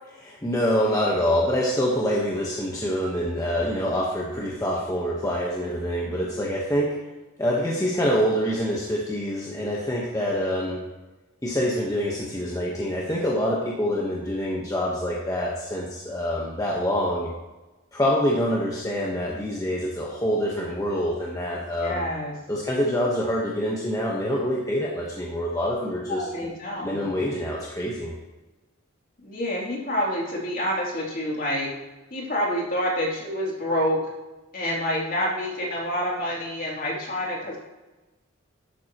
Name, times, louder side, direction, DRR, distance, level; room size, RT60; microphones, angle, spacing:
voice 1, 0.2-7.0 7.4-10.8 11.4-17.3 17.9-22.1 22.5-26.2 26.8-28.1, equal, 15° left, -3 dB, 1.1 m, -26 dB
voice 2, 21.6-22.3 26.1-27.1 29.2-31.7 32.1-34.0 34.5-37.6, equal, 45° left, -3 dB, 2.9 m, -27 dB
11.5 x 9.0 x 3.0 m, 1.1 s
head